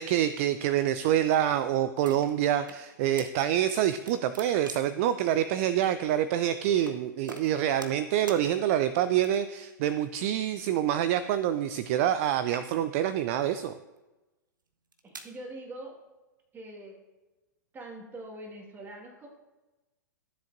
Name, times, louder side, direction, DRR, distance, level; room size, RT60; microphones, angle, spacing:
voice 1, 0.0-13.8, right 11 dB, 45° right, 13 dB, 0.4 m, -26 dB
sound 1, 2.0-2.8 3.2-3.3 3.7-5.0 5.8-6.0 6.8-7.0 7.3-8.0 8.3-8.4 9.2-9.6 10.6-12.2 12.4-13.0 13.7-14.0 14.7-15.3, right 3 dB, 80° right, 0.9 m, -45 dB
voice 2, 15.0-16.0 16.5-17.0 17.7-19.3, right 1 dB, 20° right, 1 dB, 1.8 m, -43 dB
13.0 x 7.6 x 2.6 m, 1.1 s
figure-of-eight pair, 100°, 10 cm